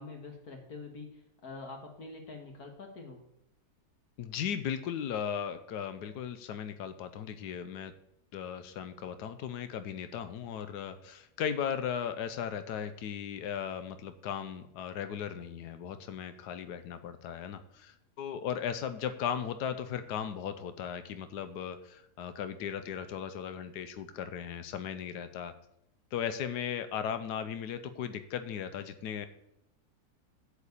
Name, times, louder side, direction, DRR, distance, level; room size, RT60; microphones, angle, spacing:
voice 1, 0.0-3.3, left 3 dB, 65° left, 2 dB, 2.0 m, -45 dB
voice 2, 4.2-7.9 8.3-25.5 26.1-29.3, left 8 dB, 85° left, 10 dB, 1.3 m, -37 dB
11.5 x 4.8 x 8.2 m, 0.80 s
omnidirectional pair, 1.7 m